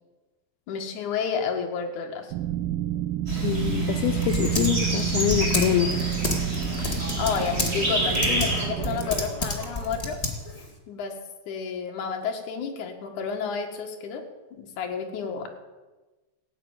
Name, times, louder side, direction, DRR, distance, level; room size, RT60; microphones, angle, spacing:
voice 1, 0.7-2.3 7.2-10.2 10.9-11.2 11.5-14.2 14.5-15.5, left 6 dB, 60° left, 3 dB, 3.0 m, -30 dB
sound 1, 2.3-9.1, right 13 dB, 80° right, 2.2 m, -30 dB
Typing, 3.3-10.7, left 2 dB, 20° left, 0.8 m, -32 dB
sound 2, 3.3-8.6, equal, 15° right, 3.5 m, -29 dB
voice 2, 3.4-5.9, left 12 dB, 85° left, 8 dB, 2.6 m, -25 dB
17.0 x 8.9 x 9.0 m, 1.2 s
omnidirectional pair, 4.4 m